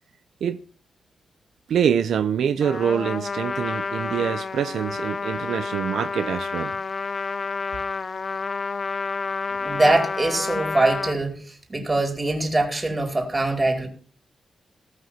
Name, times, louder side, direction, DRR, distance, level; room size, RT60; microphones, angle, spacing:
voice 1, 1.7-6.7, right 8 dB, 90° right, 0.7 m, -25 dB
Trumpet, 2.6-11.2, left 4 dB, 45° left, 1.0 m, -29 dB
voice 2, 9.5-11.3 11.7-13.9, right 2 dB, 25° right, 5.0 m, -22 dB
19.0 x 6.6 x 6.0 m
cardioid pair, 95°, 0 cm